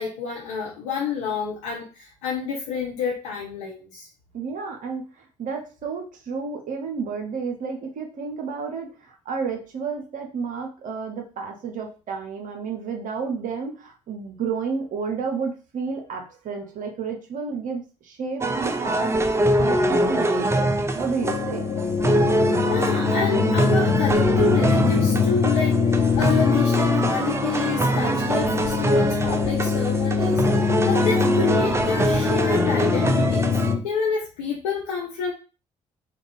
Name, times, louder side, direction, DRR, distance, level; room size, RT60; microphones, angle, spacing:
voice 1, 0.0-4.1 22.7-35.3, left 5 dB, 75° left, -4 dB, 0.8 m, -28 dB
voice 2, 4.3-21.7, right 5 dB, 55° right, 3 dB, 1.0 m, -31 dB
sound 1, 18.4-33.7, right 1 dB, 15° right, 0.5 m, -24 dB
sound 2, 21.2-33.8, left 6 dB, 40° left, 0.7 m, -23 dB
3.5 x 2.4 x 3.4 m, 0.33 s
hypercardioid pair, 50°, 16 cm